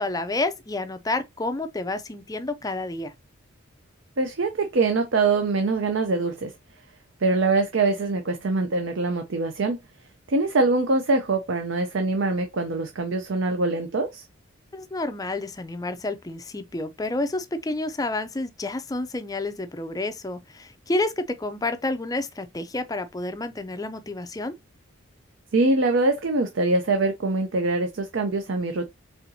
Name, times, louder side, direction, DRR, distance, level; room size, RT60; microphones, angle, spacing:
voice 1, 0.0-3.1 14.7-24.6, left 2 dB, 15° left, 0.4 m, -29 dB
voice 2, 4.2-6.5 7.2-9.8 10.3-14.2 25.5-28.9, right 3 dB, 60° right, 0.6 m, -23 dB
4.2 x 3.8 x 2.7 m
head